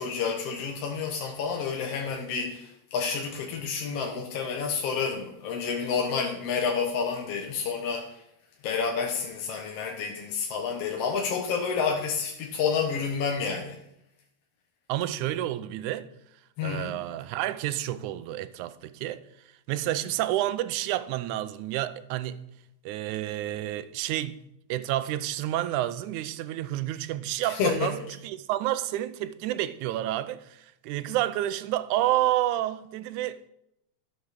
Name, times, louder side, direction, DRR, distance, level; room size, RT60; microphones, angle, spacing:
voice 1, 0.0-8.1 8.6-13.8 16.6-16.9 27.5-27.9, left 6 dB, 60° left, 1.9 m, -29 dB
voice 2, 14.9-16.1 16.6-19.2 19.7-22.4 22.9-24.4 24.7-33.5, right 14 dB, 85° right, 2.1 m, -29 dB
13.0 x 6.8 x 6.5 m
omnidirectional pair, 3.4 m